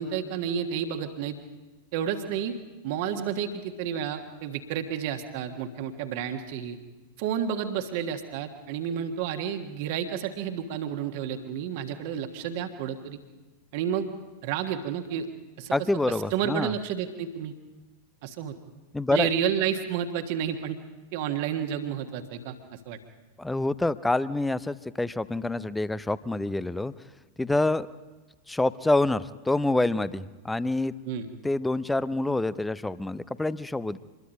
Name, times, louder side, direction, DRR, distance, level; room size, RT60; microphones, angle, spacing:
voice 1, 0.0-1.4 1.9-2.5 2.8-6.8 7.2-13.2 13.7-14.1 14.4-15.3 15.6-15.7 16.1-17.5 18.2-18.6 19.1-20.8 21.1-23.0 31.0-31.3, right 8 dB, 50° right, 6 dB, 1.5 m, -30 dB
voice 2, 15.7-16.7 18.9-19.3 23.4-26.9 27.4-27.9 28.5-30.9 31.4-34.0, left 2 dB, 5° left, 17 dB, 0.6 m, -27 dB
25.5 x 22.0 x 5.3 m, 1.2 s
figure-of-eight pair, 90°, 0 cm